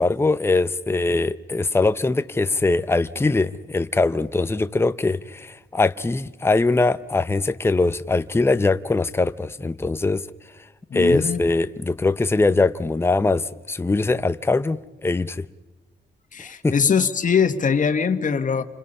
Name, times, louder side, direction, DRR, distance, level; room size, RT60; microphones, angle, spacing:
voice 1, 0.0-10.3 10.9-15.4 16.6-16.7, left 3 dB, 15° left, 0.8 m, -22 dB
voice 2, 10.9-11.4 16.3-18.6, left 6 dB, 45° left, 1.8 m, -21 dB
30.0 x 26.0 x 5.6 m
cardioid pair, 105°, 18 cm